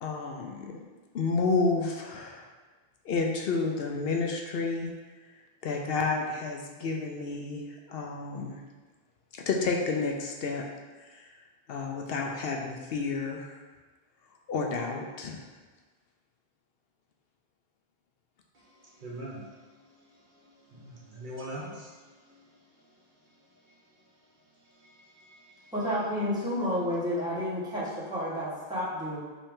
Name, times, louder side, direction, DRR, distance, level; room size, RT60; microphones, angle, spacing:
voice 1, 0.0-0.9 1.1-2.5 3.0-4.9 5.6-7.6 7.9-8.5 9.5-10.6 11.1-11.3 11.7-13.6 14.5-15.4, left 4 dB, 75° left, 1 dB, 0.8 m, -30 dB
voice 2, 19.0-19.5 20.6-22.3 24.8-25.7, right 1 dB, 55° right, -4 dB, 0.9 m, -43 dB
voice 3, 25.7-29.2, equal, 5° right, -10 dB, 1.4 m, -30 dB
5.4 x 2.8 x 3.6 m, 1.3 s
omnidirectional pair, 1.0 m